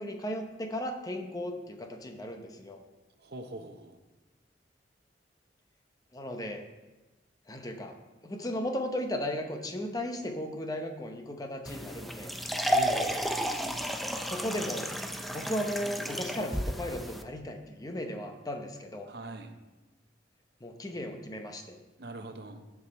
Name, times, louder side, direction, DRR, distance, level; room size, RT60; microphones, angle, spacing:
voice 1, 0.0-2.8 6.1-6.6 7.5-7.9 8.2-12.3 14.2-14.9 15.3-19.1 20.6-21.6, left 1 dB, 20° left, 5 dB, 0.8 m, -36 dB
voice 2, 3.2-4.0 12.7-13.4 19.1-19.5 22.0-22.6, right 2 dB, 65° right, 6 dB, 0.8 m, -42 dB
sound 1, 11.7-17.2, equal, ahead, 0.4 m, -32 dB
12.0 x 4.8 x 4.2 m, 1.1 s
head